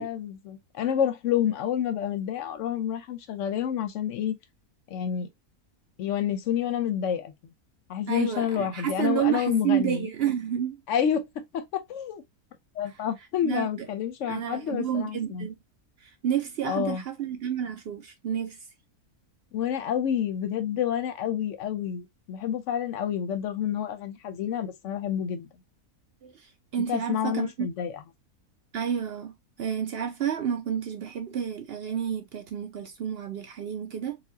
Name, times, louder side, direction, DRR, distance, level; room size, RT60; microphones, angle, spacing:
voice 1, 0.0-4.3 4.9-5.3 6.0-7.3 7.9-10.1 10.9-11.6 11.9-12.2 12.8-15.5 16.7-17.0 19.5-25.5 26.9-28.0, left 9 dB, 65° left, 0.8 m, -29 dB
voice 2, 8.1-10.8 13.4-13.9 14.3-15.5 16.0-18.6 26.2-27.7 28.7-34.2, right 9 dB, 70° right, 0.6 m, -30 dB
4.1 x 2.3 x 2.7 m
omnidirectional pair, 1.6 m